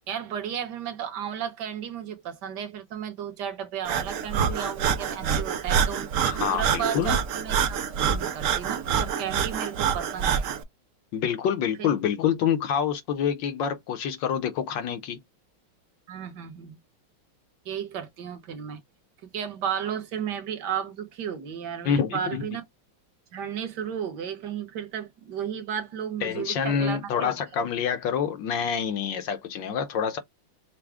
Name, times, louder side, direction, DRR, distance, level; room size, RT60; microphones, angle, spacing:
voice 1, 0.1-10.5 11.8-11.9 16.1-16.8 17.6-18.8 19.2-22.6 23.3-27.3, right 8 dB, 60° right, 1.5 m, -34 dB
Breathing, 3.8-10.6, right 7 dB, 85° right, 0.7 m, -26 dB
voice 2, 6.2-7.2 11.1-15.2 21.8-22.2 26.2-30.2, left 8 dB, 70° left, 1.4 m, -27 dB
6.0 x 2.1 x 3.4 m
omnidirectional pair, 2.3 m